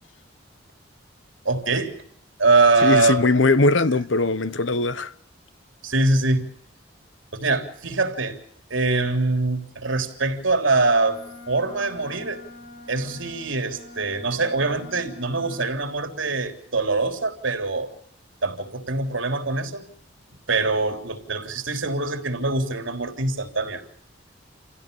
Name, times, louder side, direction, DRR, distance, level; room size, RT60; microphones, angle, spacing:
voice 1, 1.5-1.9 2.4-3.2 5.8-6.5 7.3-8.4 8.7-11.2 11.5-12.4 12.9-17.9 18.4-19.9 20.5-23.8, right 3 dB, 90° right, 3.6 m, -23 dB
voice 2, 2.8-5.1, left 3 dB, 80° left, 1.2 m, -20 dB
Wind instrument woodwind instrument, 10.8-15.7, left 2 dB, 55° left, 7.5 m, -44 dB
29.0 x 16.5 x 6.9 m
head